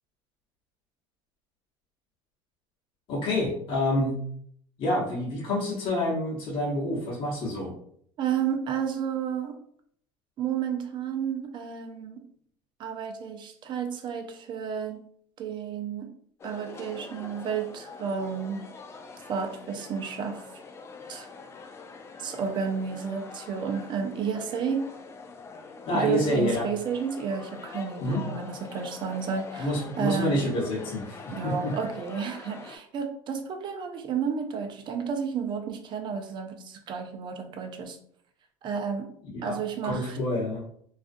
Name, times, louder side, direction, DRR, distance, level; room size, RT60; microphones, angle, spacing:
voice 1, 3.1-4.2 4.8-7.7 25.9-26.7 28.0-28.2 29.6-31.7 39.3-39.6 39.8-40.6, left 1 dB, 45° left, -6 dB, 1.0 m, -28 dB
voice 2, 8.2-9.6 10.4-12.2 12.8-15.0 15.4-16.1 16.4-18.6 19.2-20.5 21.1-21.3 22.2-24.9 25.9-30.4 31.3-38.0 38.6-39.1 39.4-40.2, right 7 dB, 40° right, 5 dB, 0.5 m, -31 dB
sound 1, 16.4-32.8, left 4 dB, 20° left, 0.3 m, -44 dB
2.4 x 2.3 x 2.5 m, 0.64 s
supercardioid pair, 110°, 12 cm